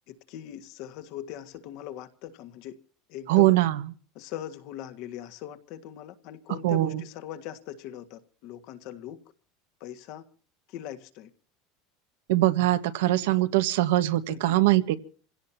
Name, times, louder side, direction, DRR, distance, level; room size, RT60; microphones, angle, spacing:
voice 1, 0.1-2.8 3.1-3.5 4.1-9.2 9.8-10.2 10.7-11.3 14.3-14.6, left 11 dB, 50° left, 1.6 m, -40 dB
voice 2, 3.3-3.8 6.6-7.0 12.3-15.0, right 16 dB, 80° right, 1.4 m, -22 dB
27.5 x 17.0 x 2.8 m
supercardioid pair, 170°, 0 cm